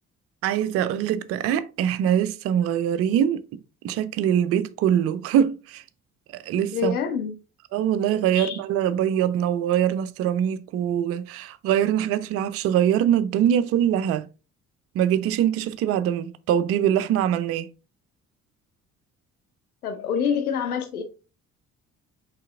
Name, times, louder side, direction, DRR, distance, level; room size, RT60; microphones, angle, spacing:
voice 1, 0.4-3.4 3.8-5.8 6.3-6.9 7.7-14.3 14.9-17.7, right 10 dB, 35° right, 0.4 m, -23 dB
voice 2, 6.7-7.4 8.3-8.6 19.8-21.0, left 7 dB, 85° left, 0.5 m, -26 dB
5.6 x 3.4 x 2.3 m
figure-of-eight pair, 45°, 43 cm